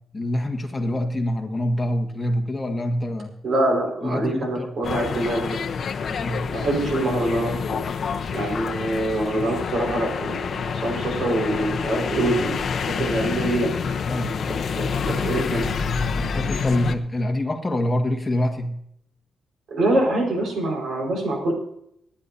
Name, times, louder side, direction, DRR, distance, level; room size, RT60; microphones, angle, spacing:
voice 1, 0.1-3.3 4.0-4.7 6.1-6.4 14.1-14.5 15.2-15.6 16.1-18.8, left 1 dB, 20° left, 2 dB, 1.8 m, -26 dB
voice 2, 3.4-5.6 6.0-6.1 6.5-7.8 8.3-14.2 14.5-15.7 19.7-21.5, right 1 dB, 65° right, 0 dB, 5.1 m, -25 dB
sound 1, 4.8-17.0, left 6 dB, 60° left, 0.8 m, -27 dB
26.5 x 9.9 x 2.8 m, 0.76 s
cardioid pair, 115°, 0 cm